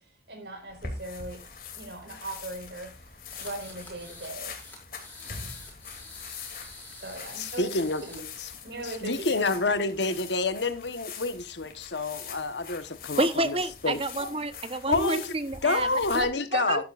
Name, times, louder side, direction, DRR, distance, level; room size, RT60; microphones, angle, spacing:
voice 1, 0.3-1.4 1.8-2.9 3.3-4.5 7.0-7.7 8.0-8.2 8.6-9.6 14.2-14.3, right 2 dB, 70° right, 5.0 m, -39 dB
sound 1, 0.7-16.2, left 5 dB, 50° left, 2.9 m, -43 dB
sound 2, 3.3-4.3 4.6-8.2, left 2 dB, 10° left, 5.2 m, -47 dB
voice 2, 7.4-8.0 8.4-8.5 8.8-14.0 14.9-15.2 15.6-16.8, left 3 dB, 80° left, 1.2 m, -28 dB
voice 3, 13.2-15.9 16.1-16.8, right 2 dB, 30° right, 1.0 m, -29 dB
15.0 x 11.0 x 2.5 m
head